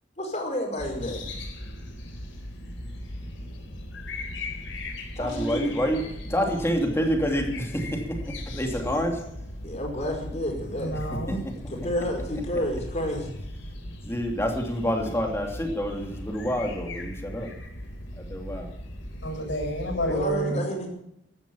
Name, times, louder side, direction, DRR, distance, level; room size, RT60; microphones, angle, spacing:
voice 1, 0.2-1.2 5.1-5.6 8.8-9.0 9.6-10.9 11.7-13.3 20.1-20.9, equal, 35° left, 1 dB, 5.1 m, -30 dB
sound 1, 0.8-20.3, left 1 dB, 85° left, 4.0 m, -38 dB
voice 2, 5.2-6.0 6.3-8.2 8.5-9.2 11.3-11.5 14.0-17.5 18.2-18.7, equal, 15° left, 2 dB, 2.9 m, -27 dB
voice 3, 10.8-11.4 19.2-20.6, right 1 dB, 70° left, 0 dB, 7.2 m, -29 dB
16.0 x 12.0 x 7.2 m, 0.81 s
head